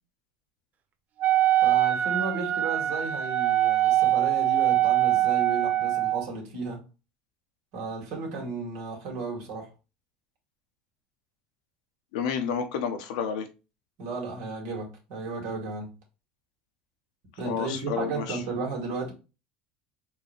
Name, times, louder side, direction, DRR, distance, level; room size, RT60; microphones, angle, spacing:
Wind instrument woodwind instrument, 1.2-6.2, right 13 dB, 40° right, 0.5 m, -23 dB
voice 1, 1.6-6.9 7.7-9.7 14.0-15.9 17.4-19.1, right 3 dB, 70° right, 2.1 m, -34 dB
voice 2, 12.1-13.5 17.4-18.4, left 7 dB, 85° left, 0.9 m, -30 dB
4.5 x 2.8 x 3.3 m
supercardioid pair, 105°, 4 cm